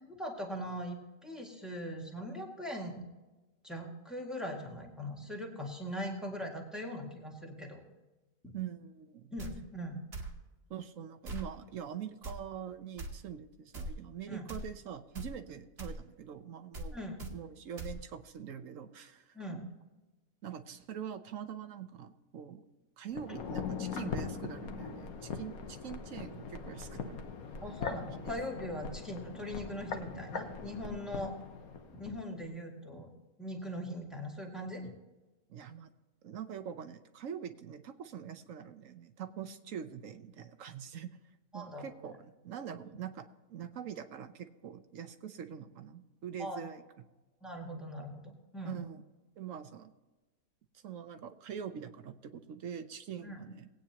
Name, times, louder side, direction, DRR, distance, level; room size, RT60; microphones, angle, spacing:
voice 1, 0.0-3.0 3.6-7.8 8.4-8.6 9.3-10.0 14.3-14.4 16.9-17.2 19.3-19.6 23.3-23.4 27.6-31.3 31.9-33.1 33.4-34.9 41.5-41.9 42.8-43.0 46.4-46.6 47.4-48.8 53.2-53.4, equal, ahead, 0 dB, 1.8 m, -41 dB
voice 2, 8.5-9.3 10.7-16.9 17.3-19.3 20.4-22.6 23.0-27.3 28.2-28.4 28.8-28.9 31.2-31.3 35.5-35.9 36.2-41.2 41.5-42.2 42.4-46.8 48.6-49.0 49.4-49.9 50.7-53.7, right 8 dB, 65° right, 8 dB, 1.1 m, -44 dB
sound 1, 9.4-9.5 10.1-10.3 11.2-11.5 12.2-12.4 13.0-13.1 13.7-13.9 14.5-14.7 15.1-15.3 15.8-16.0 16.7-16.9 17.2-17.3 17.8-17.9, right 1 dB, 45° right, 1.5 m, -40 dB
sound 2, 23.1-32.2 32.4-32.5, left 5 dB, 75° left, 1.4 m, -41 dB
19.0 x 9.0 x 2.9 m, 1.1 s
omnidirectional pair, 1.6 m